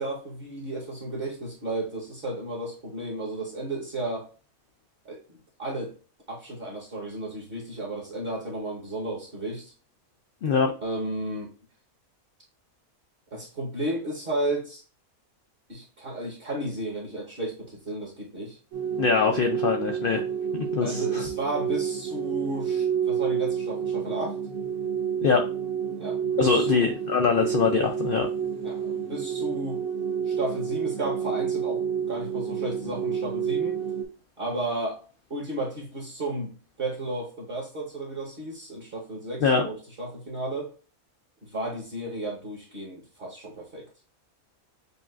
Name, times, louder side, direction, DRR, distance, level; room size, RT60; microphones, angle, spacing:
voice 1, 0.0-4.3 5.0-5.9 6.3-9.7 10.8-11.5 13.3-14.8 15.7-18.6 20.8-24.4 26.0-26.9 28.6-29.8 30.2-33.8 34.4-35.0 35.3-40.7 41.4-43.9, right 1 dB, 45° right, -2 dB, 1.1 m, -33 dB
sound 1, 18.7-34.1, right 8 dB, 65° right, 1.0 m, -29 dB
voice 2, 19.0-20.2 20.5-21.2 25.2-25.4 26.4-28.3 39.4-39.6, left 5 dB, 85° left, 4 dB, 0.4 m, -23 dB
6.7 x 2.4 x 2.4 m, 0.37 s
omnidirectional pair, 1.5 m